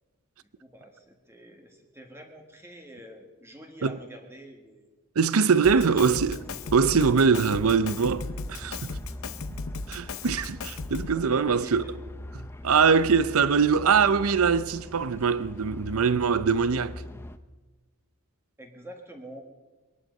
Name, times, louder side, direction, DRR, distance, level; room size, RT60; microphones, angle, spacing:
voice 1, 0.4-4.9 5.8-5.9 11.1-12.0 18.6-19.4, equal, 10° right, 1.6 m, -46 dB
voice 2, 5.2-6.4 6.7-9.0 9.9-11.8 12.3-16.9, right 5 dB, 85° right, 0.6 m, -23 dB
Drum kit, 5.6-11.2, left 3 dB, 75° left, 0.8 m, -36 dB
sound 1, 5.8-17.4, left 1 dB, 10° left, 0.5 m, -43 dB
22.0 x 11.5 x 5.4 m
head